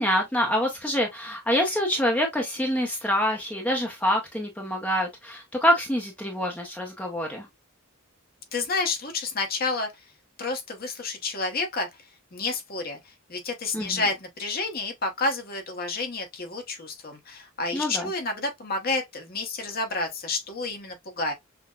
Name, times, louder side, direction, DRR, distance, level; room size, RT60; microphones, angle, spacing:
voice 1, 0.0-7.5 13.7-14.0 17.7-18.1, equal, 5° left, 0.6 m, -26 dB
voice 2, 8.5-9.9 10.4-11.9 12.3-21.3, left 3 dB, 45° left, 0.9 m, -30 dB
5.8 x 2.1 x 2.2 m
head